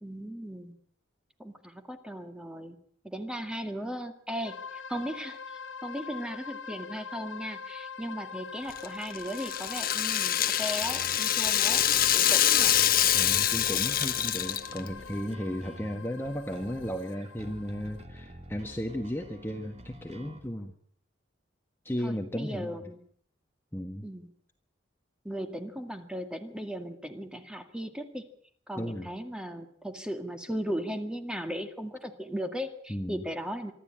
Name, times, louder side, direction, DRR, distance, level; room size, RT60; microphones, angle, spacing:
voice 1, 0.0-0.8 1.4-2.8 3.0-11.8 12.1-12.8 22.0-23.0 24.0-24.3 25.2-28.2 28.7-33.7, equal, 5° right, 6 dB, 2.0 m, -37 dB
sound 1, 4.4-18.0, left 6 dB, 85° left, 1.2 m, -43 dB
Rattle (instrument), 8.7-14.9, left 11 dB, 50° left, 1.3 m, -25 dB
sound 2, 10.8-20.4, right 1 dB, 35° right, 2.8 m, -48 dB
voice 2, 13.1-20.7 21.8-22.9 23.7-24.1 28.8-29.1 32.9-33.2, equal, 10° left, 3 dB, 1.5 m, -35 dB
25.0 x 13.5 x 8.9 m, 0.62 s
head